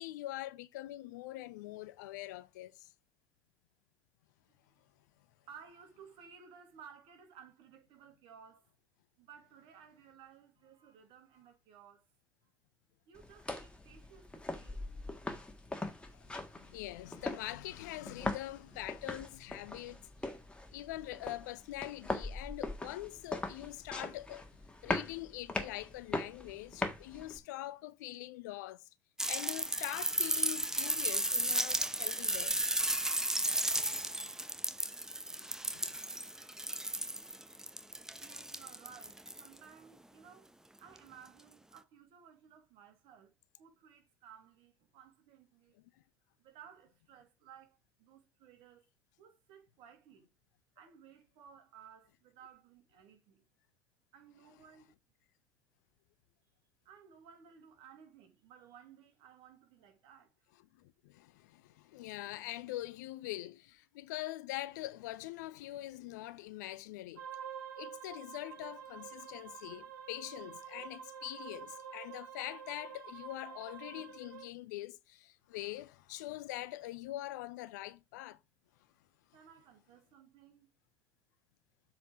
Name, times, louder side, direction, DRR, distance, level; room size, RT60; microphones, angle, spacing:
voice 1, 0.0-2.9 16.1-20.1 20.7-24.5 24.8-28.8 29.3-32.9 35.3-36.2 60.8-67.2 67.8-78.4, left 16 dB, 70° left, 0.5 m, -44 dB
voice 2, 5.4-8.7 9.2-12.0 13.1-14.8 37.8-40.5 40.8-45.8 46.4-48.8 49.2-50.3 50.8-53.5 54.1-54.9 56.8-60.5 79.3-80.7, right 7 dB, 60° right, 2.2 m, -57 dB
sound 1, 13.2-27.4, left 2 dB, 10° left, 1.6 m, -41 dB
sound 2, 29.2-39.6 41.0-41.1, right 1 dB, 5° right, 0.7 m, -34 dB
sound 3, 67.2-74.5, right 8 dB, 75° right, 1.9 m, -48 dB
7.7 x 4.2 x 4.8 m
figure-of-eight pair, 60°, 10 cm